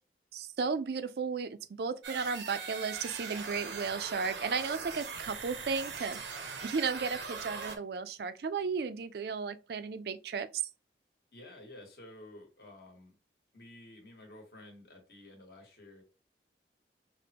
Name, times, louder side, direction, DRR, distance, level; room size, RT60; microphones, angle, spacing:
voice 1, 0.3-6.2 6.6-10.6, right 5 dB, 65° right, 0.4 m, -34 dB
sound 1, 2.0-7.8, right 5 dB, 85° right, 0.8 m, -41 dB
voice 2, 11.3-13.2 13.5-16.0, left 1 dB, 60° left, 1.3 m, -52 dB
5.1 x 2.1 x 2.8 m
head